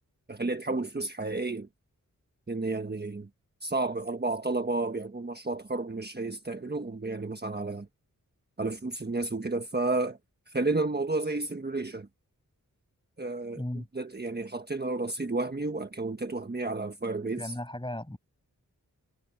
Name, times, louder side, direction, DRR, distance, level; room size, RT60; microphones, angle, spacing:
voice 1, 0.3-1.7 2.5-3.3 3.6-7.9 8.6-10.2 10.5-12.1 13.2-13.6 13.9-17.5, right 3 dB, 30° right, 1.3 m, -31 dB
voice 2, 13.5-13.9 17.4-18.2, left 1 dB, 15° left, 7.5 m, -35 dB
wide cardioid pair, 60°, 33 cm